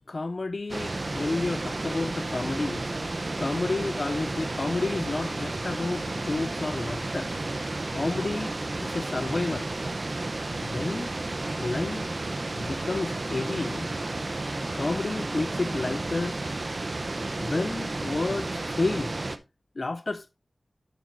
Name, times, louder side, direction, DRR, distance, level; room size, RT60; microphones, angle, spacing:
voice 1, 0.1-2.8 3.4-7.3 7.9-8.6 8.8-9.7 10.5-11.1 11.6-12.1 12.5-13.9 14.7-16.4 17.4-19.1 19.8-20.3, left 3 dB, 60° left, 0.4 m, -30 dB
sound 1, 0.7-19.4, right 2 dB, 50° right, 0.7 m, -32 dB
10.0 x 7.2 x 2.5 m
wide cardioid pair, 75°, 0 cm